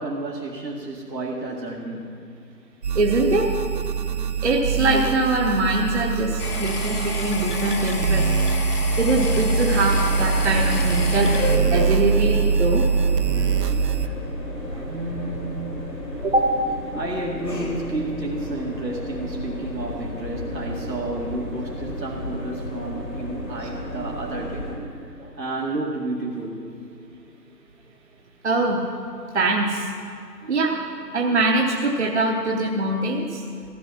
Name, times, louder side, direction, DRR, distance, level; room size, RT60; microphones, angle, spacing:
voice 1, 0.0-2.0 14.9-15.7 16.9-24.7 25.1-26.6, right 2 dB, 90° right, -2 dB, 2.2 m, -31 dB
sound 1, 2.8-14.1, right 5 dB, 70° right, 0.8 m, -23 dB
voice 2, 3.0-3.5 4.4-8.3 9.0-11.4 11.7-12.9 13.4-13.5 14.7-14.9 16.2-16.6 23.5-23.7 25.2-25.3 28.4-28.9 29.3-29.9 30.4-30.8 31.1-33.4, right 2 dB, 45° right, -1 dB, 0.9 m, -23 dB
sound 2, 6.4-11.6, left 3 dB, 65° left, 1.8 m, -31 dB
sound 3, 9.5-24.8, left 1 dB, 80° left, 3.7 m, -32 dB
15.0 x 10.0 x 5.9 m, 2.3 s
figure-of-eight pair, 160°, 49 cm